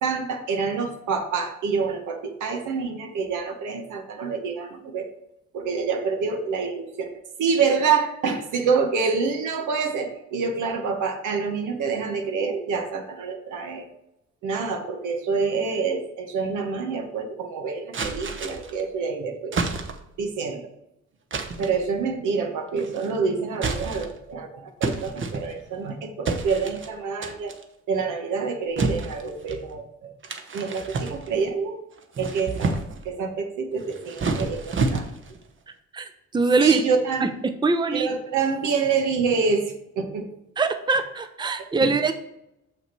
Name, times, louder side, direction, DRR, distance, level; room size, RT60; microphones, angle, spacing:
voice 1, 0.0-5.1 5.5-7.1 7.4-13.9 14.4-19.5 20.2-20.7 21.6-27.5 27.9-30.1 30.5-31.8 32.2-32.8 33.0-35.1 36.6-37.4 37.9-40.3 41.6-41.9, right 5 dB, 80° right, 4 dB, 1.4 m, -27 dB
sound 1, 17.9-18.8 19.5-20.2 21.3-21.8 22.8-23.2 23.5-24.3 24.8-25.8 26.2-26.9 27.2-27.6 28.8-29.6 30.2-31.5 32.0-33.1 33.8-35.4, right 3 dB, 40° right, 1.0 m, -29 dB
voice 2, 35.9-36.8 37.2-38.1 40.6-42.1, right 3 dB, 15° right, 8 dB, 0.6 m, -23 dB
6.6 x 5.7 x 4.6 m, 0.85 s
cardioid pair, 90°, 30 cm